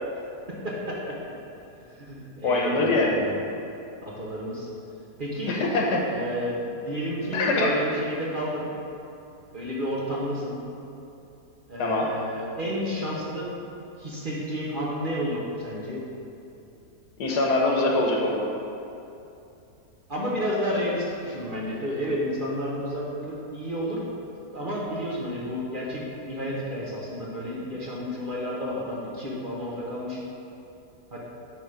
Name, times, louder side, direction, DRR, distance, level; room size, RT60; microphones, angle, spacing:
voice 1, 0.6-1.2 1.8-3.3 4.0-4.7 5.2-5.6 6.1-8.7 9.5-10.6 11.7-13.5 14.0-16.0 20.1-24.0 24.5-30.2 31.1-31.2, equal, 35° right, -5 dB, 1.1 m, -31 dB
voice 2, 2.4-3.2 5.5-6.1 7.3-7.7 11.8-12.1 17.2-18.5, left 2 dB, 80° left, -1 dB, 1.6 m, -23 dB
10.5 x 3.6 x 5.0 m, 2.8 s
omnidirectional pair, 1.7 m